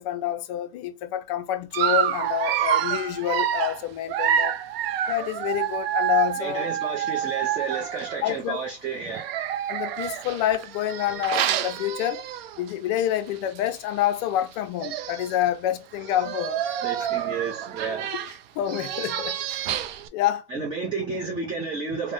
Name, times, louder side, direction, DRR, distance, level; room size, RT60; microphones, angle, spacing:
voice 1, 0.0-4.5 5.1-6.7 8.2-8.6 9.7-12.2 12.6-16.8 18.5-19.6 20.1-20.4, left 12 dB, 40° left, 0.5 m, -27 dB
Dog, 1.7-8.3 9.1-12.7 13.1-13.3 13.6-13.7 14.5-14.6 14.8-15.4 16.0-20.1, right 10 dB, 75° right, 0.5 m, -28 dB
voice 2, 6.4-9.3 16.8-18.2 20.5-22.1, right 4 dB, 15° right, 0.6 m, -31 dB
3.4 x 2.1 x 2.6 m
supercardioid pair, 155°, 30 cm